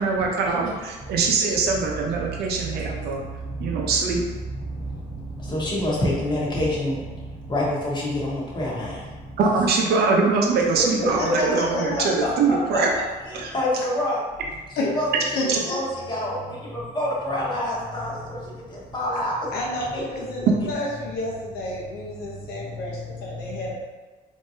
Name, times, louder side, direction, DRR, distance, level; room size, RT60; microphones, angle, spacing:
voice 1, 0.0-3.2 3.6-4.2 9.4-12.9 13.4-13.5 15.5-15.6, right 4 dB, 70° right, 0 dB, 0.7 m, -23 dB
voice 2, 1.7-4.0 4.5-9.6 11.2-11.3 11.9-12.8 13.2-14.2 14.7-15.4 15.7-19.6 19.9-20.5 22.2-23.7, left 1 dB, 25° left, -5 dB, 1.1 m, -29 dB
voice 3, 11.4-12.1 14.8-14.9 15.3-15.8 19.5-23.7, left 1 dB, 75° left, -2 dB, 1.0 m, -30 dB
3.6 x 2.9 x 2.7 m, 1.3 s
cardioid pair, 110°, 17 cm